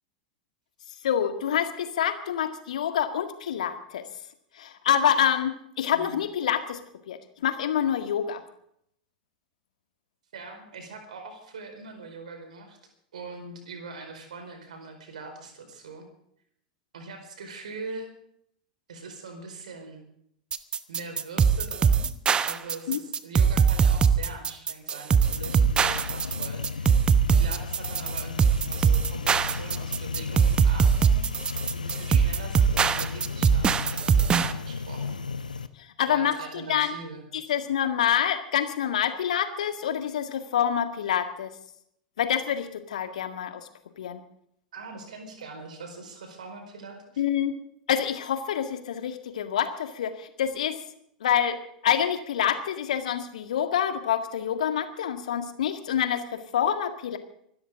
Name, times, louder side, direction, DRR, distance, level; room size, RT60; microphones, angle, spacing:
voice 1, 1.0-4.0 4.6-6.8 7.1-8.4 22.9-23.0 36.0-36.9 37.5-41.5 42.2-43.6 44.0-44.2 47.2-47.5 47.9-50.7 51.2-51.6 51.8-57.2, left 9 dB, 65° left, 8 dB, 1.9 m, -27 dB
voice 2, 5.9-6.3 10.3-12.8 13.1-16.1 16.9-18.1 18.9-20.1 20.9-22.1 22.4-31.3 31.7-35.2 35.5-35.6 36.1-37.6 44.7-47.2, right 3 dB, 65° right, 5 dB, 4.7 m, -42 dB
sound 1, 20.5-34.5, right 6 dB, 20° right, 1.0 m, -22 dB
sound 2, 25.2-35.7, left 5 dB, 80° left, 0.9 m, -34 dB
25.5 x 13.0 x 3.8 m, 0.70 s
figure-of-eight pair, 85°, 4 cm